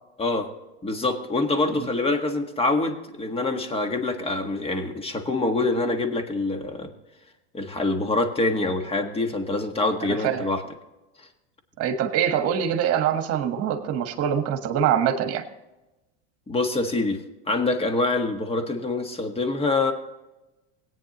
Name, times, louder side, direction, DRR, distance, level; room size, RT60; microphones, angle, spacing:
voice 1, 0.2-0.5 0.8-6.9 7.5-10.6 16.5-17.2 17.5-19.9, left 2 dB, 15° left, 6 dB, 1.6 m, -25 dB
voice 2, 11.8-15.4, right 9 dB, 45° right, 7 dB, 1.5 m, -24 dB
18.0 x 9.3 x 3.0 m, 1.0 s
hypercardioid pair, 105°, 34 cm